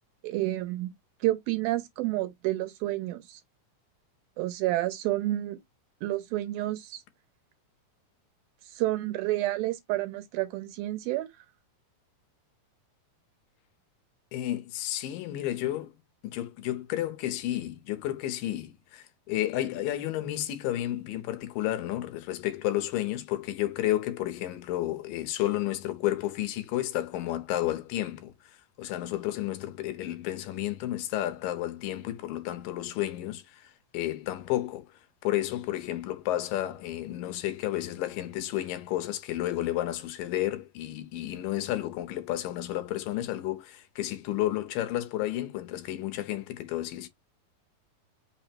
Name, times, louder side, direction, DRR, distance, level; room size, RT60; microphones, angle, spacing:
voice 1, 0.2-0.9 1.2-3.4 4.4-5.6 6.0-7.0 8.8-11.3, right 16 dB, 90° right, 2.6 m, -29 dB
voice 2, 14.3-15.9 16.2-28.3 28.8-34.9 35.2-47.1, left 14 dB, 75° left, 2.3 m, -31 dB
5.7 x 2.0 x 4.3 m
omnidirectional pair, 4.2 m